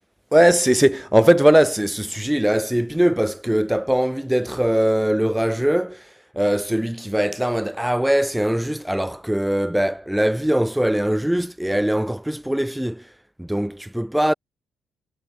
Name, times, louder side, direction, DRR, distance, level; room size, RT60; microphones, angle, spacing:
voice 1, 0.3-13.1 13.4-14.3, equal, 5° right, 0.5 m, -20 dB
cardioid pair, 90°, 0 cm